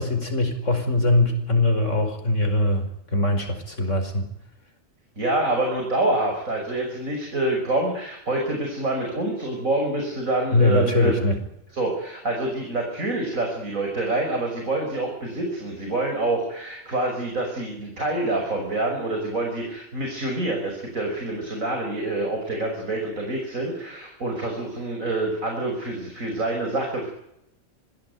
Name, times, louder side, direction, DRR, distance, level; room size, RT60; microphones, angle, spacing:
voice 1, 0.0-4.3 10.5-11.4, left 2 dB, 65° left, 6 dB, 5.5 m, -22 dB
voice 2, 5.2-11.2 11.7-27.1, right 2 dB, 90° right, 2 dB, 6.2 m, -26 dB
25.5 x 18.0 x 9.4 m, 0.79 s
omnidirectional pair, 1.4 m